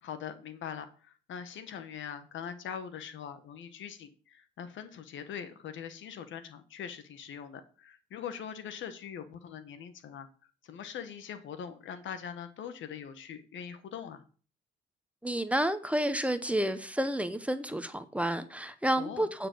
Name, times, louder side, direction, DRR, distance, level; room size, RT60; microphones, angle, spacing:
voice 1, 0.0-10.3 10.6-14.2 19.0-19.3, left 8 dB, 75° left, 10 dB, 1.3 m, -42 dB
voice 2, 15.2-19.5, right 1 dB, 5° right, 10 dB, 0.8 m, -30 dB
8.7 x 5.0 x 6.2 m, 0.39 s
cardioid pair, 90°, 20 cm